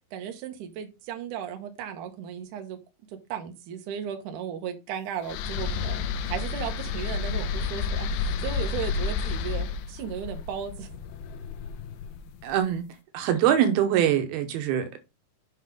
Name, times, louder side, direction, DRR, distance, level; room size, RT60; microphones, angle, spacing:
voice 1, 0.1-2.8 3.3-10.9, right 8 dB, 65° right, 2.4 m, -35 dB
sound 1, 5.3-12.4, left 5 dB, 80° left, 2.5 m, -31 dB
voice 2, 12.4-12.9 13.1-15.0, right 10 dB, 90° right, 2.9 m, -23 dB
7.7 x 5.4 x 3.7 m
omnidirectional pair, 4.3 m